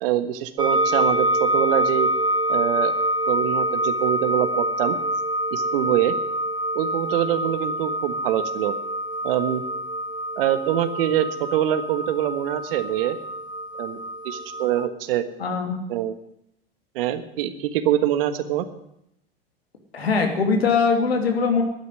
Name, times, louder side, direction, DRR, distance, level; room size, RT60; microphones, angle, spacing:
voice 1, 0.0-2.1 2.5-2.9 3.3-5.0 5.5-6.1 6.7-8.7 9.2-9.6 10.4-13.2 13.8-14.0 14.2-15.2 15.9-16.1 16.9-18.7, right 12 dB, 65° right, 11 dB, 1.5 m, -24 dB
sound 1, 0.6-14.9, right 1 dB, 15° right, 1.3 m, -26 dB
voice 2, 15.4-15.8 19.9-21.6, left 5 dB, 85° left, 4 dB, 2.8 m, -21 dB
12.0 x 9.5 x 9.7 m, 0.78 s
hypercardioid pair, 85°, 30 cm